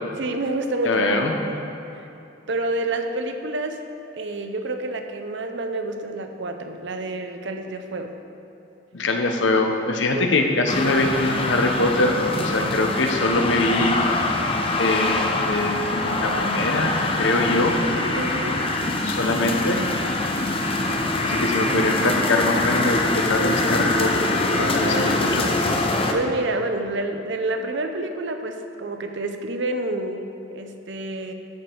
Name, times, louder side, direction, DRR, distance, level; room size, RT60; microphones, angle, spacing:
voice 1, 0.2-1.0 1.5-1.6 1.9-2.0 2.5-3.9 4.1-8.2 10.1-10.3 18.1-18.7 24.8-25.2 26.1-31.3, right 2 dB, 65° right, 6 dB, 0.7 m, -28 dB
voice 2, 0.8-1.4 8.9-14.0 14.8-17.8 19.0-19.8 21.2-25.4, left 2 dB, 70° left, 3 dB, 0.9 m, -23 dB
sound 1, 10.7-26.1, left 2 dB, 30° left, 0.6 m, -24 dB
13.0 x 5.1 x 4.6 m, 2.9 s
head